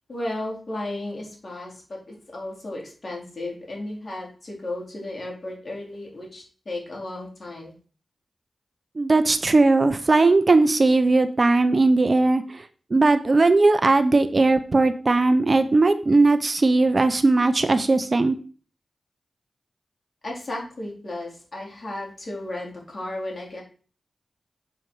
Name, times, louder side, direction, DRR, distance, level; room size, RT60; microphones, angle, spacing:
voice 1, 0.1-7.7 20.2-23.6, left 1 dB, 50° left, -1 dB, 3.7 m, -34 dB
voice 2, 9.0-12.4 12.9-18.3, right 3 dB, 45° right, 10 dB, 0.8 m, -18 dB
7.2 x 4.6 x 6.1 m, 0.39 s
cardioid pair, 60°, 0 cm